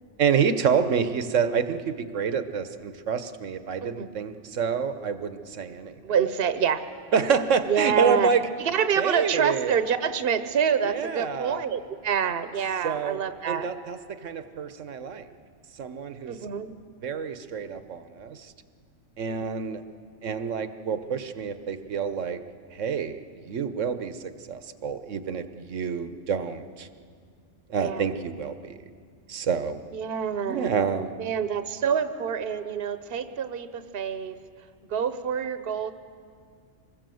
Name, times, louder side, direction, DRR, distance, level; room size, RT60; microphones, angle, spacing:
voice 1, 0.2-6.0 7.1-8.5 9.0-9.7 10.8-11.6 12.8-13.2 13.5-15.3 15.8-16.4 17.0-18.5 19.2-19.8 20.2-22.4 22.7-23.2 23.4-26.9 27.7-28.8 29.3-29.8 30.4-31.1, right 6 dB, 85° right, 10 dB, 1.4 m, -28 dB
voice 2, 6.0-6.8 7.7-8.3 8.6-13.7 16.3-16.7 19.2-19.5 27.8-28.0 29.9-30.7 31.2-34.4 34.9-35.9, right 7 dB, 55° right, 11 dB, 1.1 m, -27 dB
24.5 x 20.0 x 7.8 m, 2.1 s
omnidirectional pair, 1.2 m